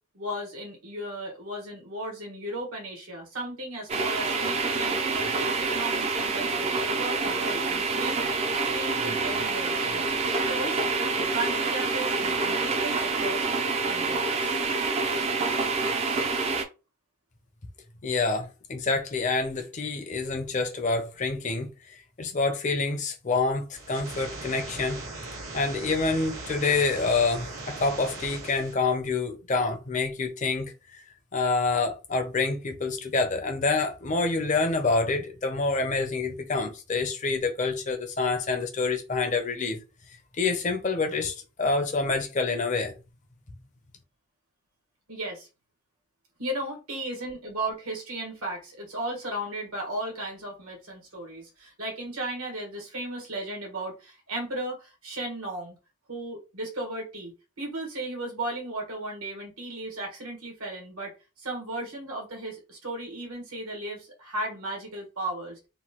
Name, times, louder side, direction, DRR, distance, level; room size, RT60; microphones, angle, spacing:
voice 1, 0.1-8.2 8.7-10.8 11.2-13.5 13.8-14.6 45.1-45.5 46.4-55.8 56.1-65.6, right 1 dB, 85° right, 1.4 m, -35 dB
sound 1, 3.9-16.6, right 4 dB, 30° right, 0.3 m, -27 dB
voice 2, 18.0-21.7 22.2-25.0 25.5-31.0 31.3-39.8 40.4-42.9, left 3 dB, 35° left, 0.5 m, -27 dB
sound 2, 23.7-28.7, right 2 dB, 70° right, 1.1 m, -39 dB
3.0 x 2.2 x 2.9 m
head